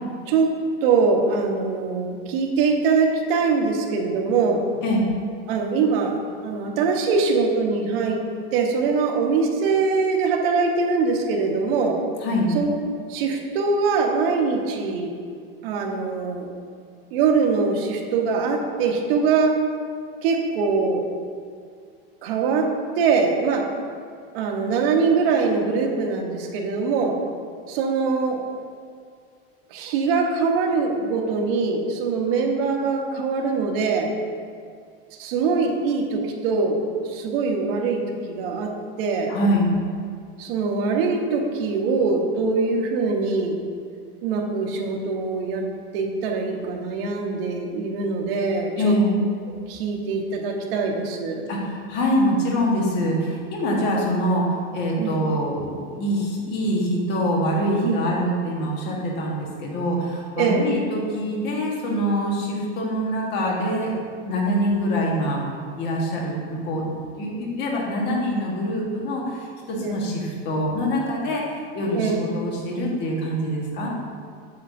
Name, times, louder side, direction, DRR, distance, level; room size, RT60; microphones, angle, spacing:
voice 1, 0.8-4.6 5.5-8.2 8.5-12.0 12.5-12.8 13.1-15.1 15.6-16.5 17.1-19.6 20.2-21.0 22.2-22.7 22.9-23.6 24.3-27.2 27.7-28.4 29.7-34.1 35.2-36.8 37.0-38.7 39.0-39.3 40.4-43.6 44.2-45.6 45.9-48.9 49.7-51.5 55.0-55.2 57.8-58.0 60.4-60.7 69.8-70.0 71.9-72.2, right 4 dB, 70° right, 1 dB, 1.1 m, -23 dB
voice 2, 39.3-39.7 48.8-49.1 51.5-65.5 65.8-73.9, equal, 35° left, -2 dB, 1.4 m, -24 dB
8.5 x 6.7 x 2.7 m, 2.2 s
supercardioid pair, 165°, 30 cm